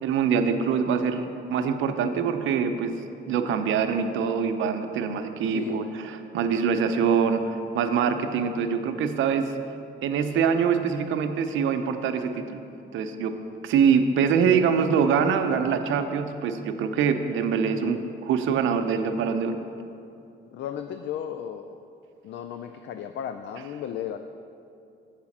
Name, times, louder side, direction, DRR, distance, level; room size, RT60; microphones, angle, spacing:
voice 1, 0.0-2.9 3.3-9.5 10.0-12.6 12.9-13.3 13.6-19.6, right 6 dB, 80° right, 7 dB, 0.6 m, -24 dB
voice 2, 5.5-5.8 20.5-21.8 22.2-24.2, left 9 dB, 70° left, 8 dB, 0.4 m, -34 dB
7.3 x 4.9 x 7.2 m, 2.6 s
cardioid pair, 90°, 20 cm